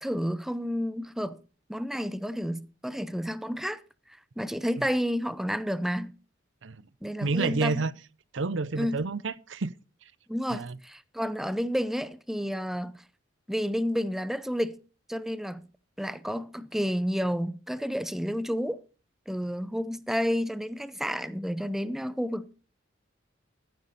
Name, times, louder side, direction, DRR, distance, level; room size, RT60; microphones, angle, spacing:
voice 1, 0.0-1.4 1.7-3.8 4.4-6.1 7.0-7.8 8.8-9.0 10.3-13.0 13.5-14.8 15.1-15.7 16.0-18.8 19.3-22.5, equal, ahead, 0.5 m, -30 dB
voice 2, 7.2-7.9 8.3-9.7 10.5-10.7, right 3 dB, 65° right, 0.7 m, -29 dB
14.5 x 9.4 x 4.1 m
head